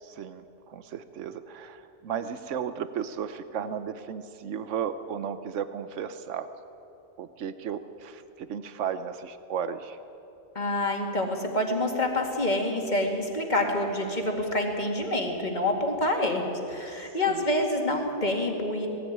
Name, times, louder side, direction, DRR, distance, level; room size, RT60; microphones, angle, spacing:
voice 1, 0.0-6.5 7.2-10.0 17.3-17.4, right 8 dB, 85° right, 11 dB, 1.1 m, -34 dB
voice 2, 10.6-18.9, left 1 dB, 40° left, 2 dB, 2.4 m, -27 dB
18.5 x 15.5 x 9.3 m, 2.9 s
omnidirectional pair, 1.2 m